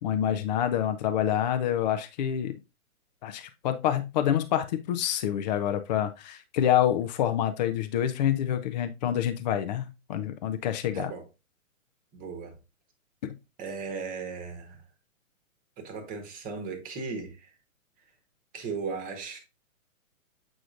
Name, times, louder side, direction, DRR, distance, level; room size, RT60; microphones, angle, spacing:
voice 1, 0.0-2.5 3.2-11.1 13.2-13.3, left 10 dB, 30° left, 0.6 m, -27 dB
voice 2, 10.9-11.3 12.1-12.6 13.6-14.8 15.8-17.5 18.5-19.4, right 4 dB, 20° right, 1.2 m, -36 dB
7.9 x 4.9 x 2.5 m
hypercardioid pair, 135°, 42 cm